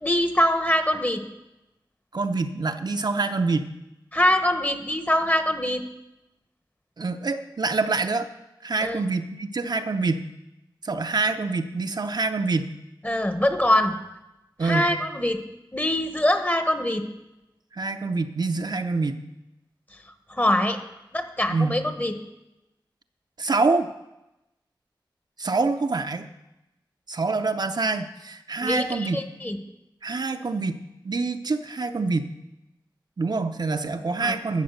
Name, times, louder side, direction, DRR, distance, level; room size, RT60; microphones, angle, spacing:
voice 1, 0.0-1.2 4.1-5.8 8.8-9.0 13.0-14.0 14.6-15.4 15.7-17.1 20.3-20.8 21.1-22.1 28.6-29.6 34.2-34.4, left 1 dB, 20° left, 8 dB, 1.2 m, -23 dB
voice 2, 2.1-3.7 7.0-8.3 8.6-10.3 10.8-12.7 14.6-14.9 17.7-19.2 21.5-21.8 23.4-23.9 25.4-26.3 27.1-29.2 30.0-32.3 33.2-34.6, right 3 dB, 55° right, 6 dB, 0.7 m, -26 dB
12.5 x 7.3 x 6.6 m, 0.94 s
wide cardioid pair, 70°, 8 cm